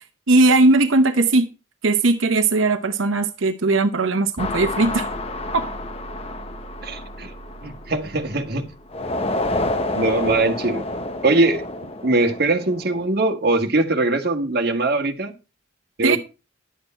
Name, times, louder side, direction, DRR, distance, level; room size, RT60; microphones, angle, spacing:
voice 1, 0.0-1.5 1.8-5.1 5.5-5.6 16.0-16.2, right 2 dB, 85° right, 0.9 m, -18 dB
sound 1, 4.4-8.4 8.9-13.1, left 2 dB, 30° left, 0.8 m, -29 dB
sound 2, 4.4-9.4, right 2 dB, 20° right, 4.2 m, -41 dB
voice 2, 6.8-7.3 7.6-8.6 9.9-10.8 11.2-11.6 12.0-15.3 16.0-16.2, right 2 dB, 55° right, 1.5 m, -21 dB
11.5 x 8.1 x 4.4 m
head